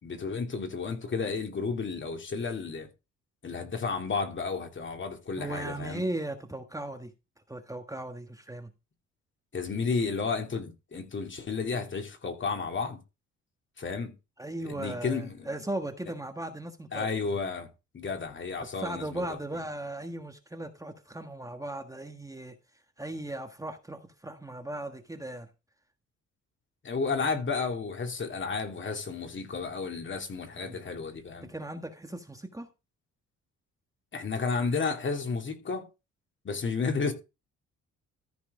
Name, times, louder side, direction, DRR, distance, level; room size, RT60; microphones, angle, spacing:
voice 1, 0.0-2.9 3.4-6.0 9.5-13.0 13.8-14.1 14.6-15.5 16.9-17.7 17.9-19.2 26.8-31.5 34.1-35.9 36.4-37.1, left 4 dB, 40° left, 2.7 m, -32 dB
voice 2, 5.4-7.1 7.5-8.7 14.4-17.1 18.8-22.5 23.0-25.5 30.6-30.8 31.4-32.7, right 1 dB, 10° right, 1.4 m, -37 dB
14.0 x 4.7 x 4.9 m
cardioid pair, 90°, 30 cm